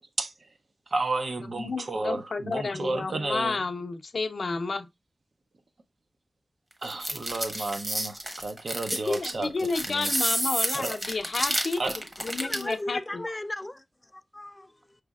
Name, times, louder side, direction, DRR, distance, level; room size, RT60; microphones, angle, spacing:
voice 1, 0.9-3.6 6.8-10.1 10.7-11.0 11.8-12.0, right 3 dB, 60° right, 0.6 m, -32 dB
voice 2, 1.5-4.9 9.1-13.2, left 3 dB, 65° left, 0.6 m, -31 dB
sound 1, 6.8-12.7, right 1 dB, 25° right, 1.0 m, -30 dB
voice 3, 12.4-13.8 14.1-14.7, left 1 dB, 20° left, 0.3 m, -35 dB
5.5 x 3.3 x 2.3 m
wide cardioid pair, 90°, 0 cm